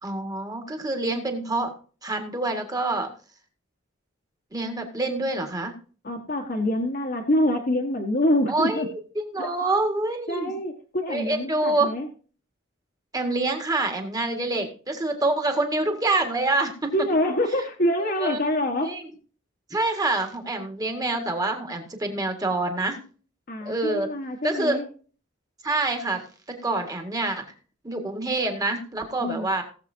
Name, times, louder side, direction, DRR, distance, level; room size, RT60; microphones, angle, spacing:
voice 1, 0.0-1.7 2.0-3.1 4.5-5.8 8.5-10.5 11.1-11.9 13.1-16.9 18.2-18.4 18.8-19.0 19.7-23.0 23.6-24.1 24.4-24.8 25.6-27.4 27.8-29.6, right 2 dB, 20° right, 5 dB, 1.8 m, -26 dB
voice 2, 6.0-8.9 9.4-9.5 10.3-12.1 16.9-18.9 23.5-24.9 29.2-29.5, left 1 dB, 45° left, 3 dB, 1.4 m, -25 dB
18.5 x 7.4 x 2.7 m, 0.40 s
head